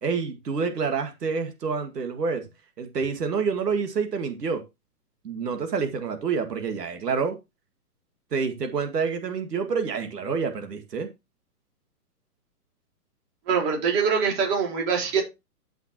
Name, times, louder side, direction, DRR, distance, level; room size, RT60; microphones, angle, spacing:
voice 1, 0.0-2.4 2.8-4.6 5.2-7.4 8.3-11.1, right 5 dB, 85° right, 2.1 m, -28 dB
voice 2, 13.5-15.2, right 6 dB, 30° right, 4.3 m, -23 dB
13.5 x 5.8 x 2.9 m
hypercardioid pair, 145°, 47 cm